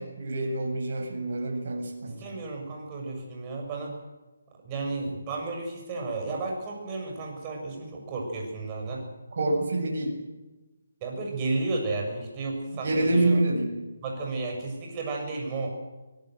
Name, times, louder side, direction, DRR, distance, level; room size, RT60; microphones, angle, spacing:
voice 1, 0.0-2.2 9.4-10.1 12.7-13.7, right 2 dB, 50° right, 2 dB, 7.3 m, -26 dB
voice 2, 2.0-3.9 4.6-9.0 11.0-13.4 14.0-15.7, right 3 dB, 25° right, 1 dB, 7.1 m, -33 dB
24.0 x 18.5 x 7.8 m, 1.1 s
figure-of-eight pair, 155°, 0 cm